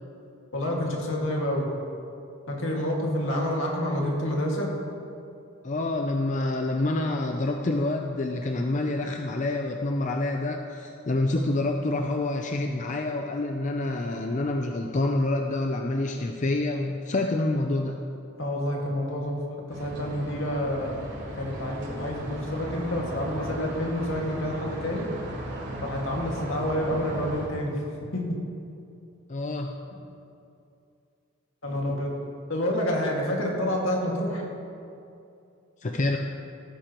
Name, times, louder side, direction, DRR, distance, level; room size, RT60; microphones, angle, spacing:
voice 1, 0.5-1.7 2.5-4.7 18.4-19.4 19.7-21.1 21.4-25.1 25.8-27.8 28.1-28.4 31.6-32.1 32.5-34.5, equal, 75° left, -1 dB, 2.0 m, -28 dB
voice 2, 5.6-18.0 29.3-29.7 35.8-36.2, left 2 dB, 40° left, 3 dB, 0.5 m, -27 dB
sound 1, 19.7-27.5, equal, 60° right, 3.0 m, -37 dB
16.5 x 10.0 x 3.0 m, 2.6 s
head